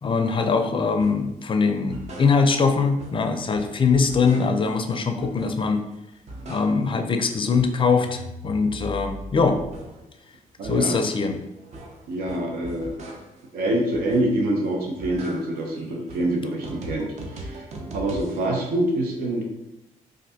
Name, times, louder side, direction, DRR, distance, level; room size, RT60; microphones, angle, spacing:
voice 1, 0.0-5.8 6.5-9.6 10.6-11.4, left 4 dB, 35° left, 7 dB, 0.4 m, -22 dB
sound 1, 1.0-1.3 1.7-2.7 3.0-4.8 5.2-5.8 6.1-7.1 7.4-10.1 10.5-13.5 13.9-14.5 14.8-18.4, right 1 dB, 50° right, 0.6 m, -40 dB
voice 2, 10.6-11.0 12.1-12.9 13.5-17.7 17.9-19.4, right 1 dB, 85° right, 1 dB, 0.6 m, -25 dB
3.2 x 2.5 x 2.7 m, 0.89 s
supercardioid pair, 65°, 15 cm